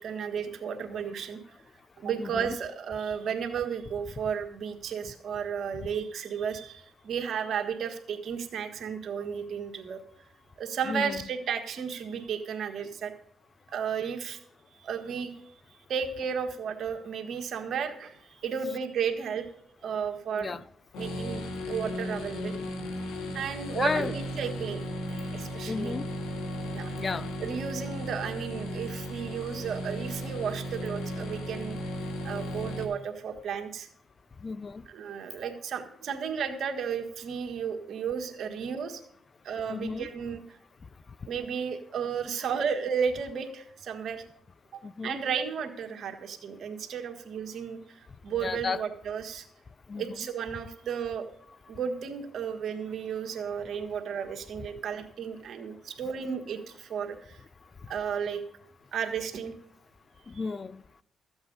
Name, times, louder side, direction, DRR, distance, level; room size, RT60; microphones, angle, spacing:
voice 1, 0.0-1.4 2.0-10.0 10.6-13.1 13.7-14.4 14.8-19.5 19.8-20.6 21.0-22.5 23.3-24.8 25.2-25.9 26.7-26.9 27.4-31.8 32.2-33.9 34.9-39.0 39.4-40.6 41.3-44.2 44.7-49.4 50.0-51.3 51.7-57.4 57.9-58.4 58.9-59.5 60.3-60.4, right 7 dB, 60° right, 1.5 m, -33 dB
voice 2, 2.2-2.6 10.9-11.2 20.4-20.6 23.7-24.1 25.7-26.1 27.0-27.3 34.4-34.8 39.7-40.1 44.8-45.2 48.4-48.8 49.9-50.3 57.8-57.9 60.3-60.8, left 4 dB, 35° left, 0.3 m, -33 dB
sound 1, 20.9-32.8, equal, 85° left, 1.6 m, -35 dB
13.5 x 8.0 x 5.3 m
cardioid pair, 85°, 0 cm